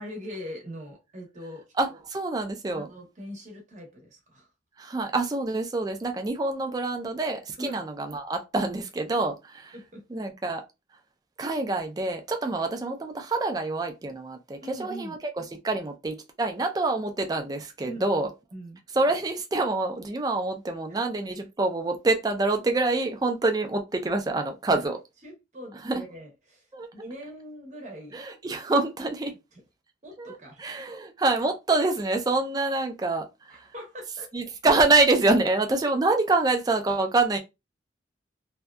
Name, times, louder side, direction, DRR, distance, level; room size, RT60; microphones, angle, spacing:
voice 1, 0.0-1.6 2.7-4.5 7.6-7.9 9.7-10.0 14.6-15.2 17.8-18.1 18.5-18.8 20.9-21.0 25.2-28.2 30.0-30.6 33.5-34.3, equal, 40° right, 0.8 m, -41 dB
voice 2, 1.8-2.9 4.8-9.8 10.1-10.6 11.4-18.3 18.9-25.0 25.8-26.0 26.7-26.9 28.1-29.3 30.2-33.6 34.3-37.4, right 2 dB, 20° right, 0.3 m, -26 dB
2.6 x 2.2 x 2.2 m
head